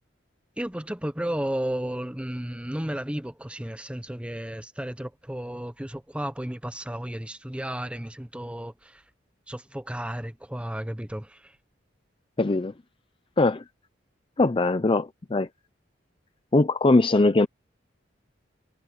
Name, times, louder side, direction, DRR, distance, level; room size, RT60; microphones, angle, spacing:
voice 1, 0.6-9.0 9.5-11.6, right 1 dB, 5° right, 0.8 m, -33 dB
voice 2, 12.4-12.7 13.4-13.6 14.4-15.5 16.5-17.5, left 2 dB, 25° left, 0.5 m, -21 dB
head